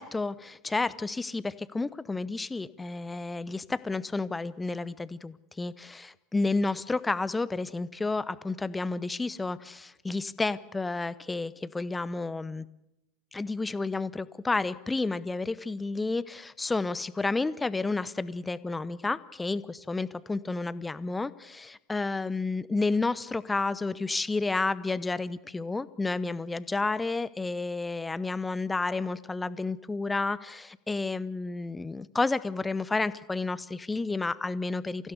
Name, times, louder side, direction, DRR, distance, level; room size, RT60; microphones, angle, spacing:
voice 1, 0.0-12.7 13.3-35.1, left 3 dB, 10° left, 17 dB, 0.8 m, -31 dB
26.0 x 16.0 x 8.2 m, 0.89 s
figure-of-eight pair, 80°, 0 cm